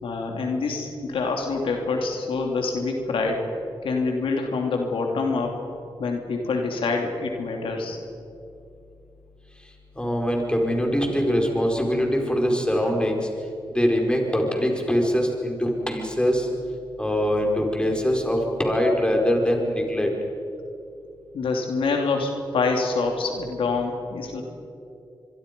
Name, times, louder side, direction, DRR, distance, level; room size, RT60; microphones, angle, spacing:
voice 1, 0.0-3.4 3.8-5.6 6.0-8.0 21.3-24.4, left 4 dB, 90° left, 2 dB, 2.8 m, -26 dB
voice 2, 10.0-13.2 13.7-16.5 17.0-20.1, equal, 10° left, 1 dB, 4.8 m, -23 dB
25.0 x 23.5 x 5.4 m, 2.6 s
cardioid pair, 65°, 9 cm